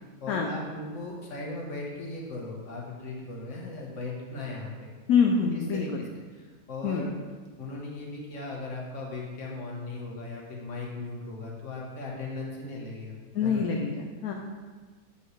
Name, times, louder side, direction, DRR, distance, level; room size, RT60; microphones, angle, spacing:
voice 1, 0.2-4.9 5.5-5.9 6.4-7.1 7.6-13.1 13.4-13.6, left 2 dB, 55° left, -2 dB, 1.5 m, -37 dB
voice 2, 5.1-6.0 6.8-7.1 13.3-14.3, left 6 dB, 75° left, 1 dB, 1.1 m, -25 dB
8.3 x 5.5 x 3.2 m, 1.4 s
omnidirectional pair, 1.6 m